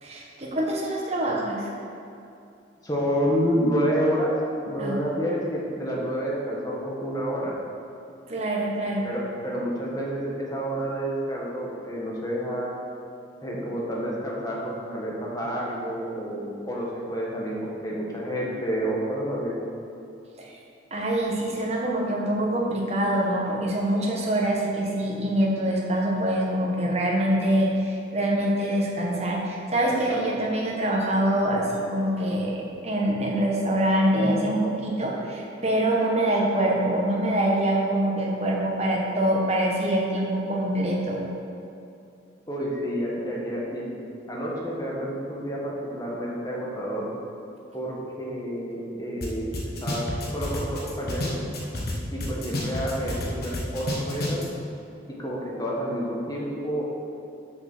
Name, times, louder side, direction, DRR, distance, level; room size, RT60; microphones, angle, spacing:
voice 1, 0.0-1.7 4.8-5.0 8.3-9.1 20.4-20.5 20.9-41.2, right 1 dB, 35° right, -2 dB, 1.4 m, -25 dB
voice 2, 2.8-4.3 4.6-7.5 9.0-12.7 13.4-17.6 17.8-19.5 30.1-30.2 42.5-43.9 44.3-47.1 47.7-49.5 49.8-50.0 50.3-51.4 52.1-54.4 55.1-56.8, equal, 20° left, -4 dB, 1.5 m, -29 dB
sound 1, 49.2-49.3 49.5-51.9 52.2-54.4, left 2 dB, 55° left, 1.4 m, -29 dB
6.8 x 6.2 x 6.2 m, 2.6 s
head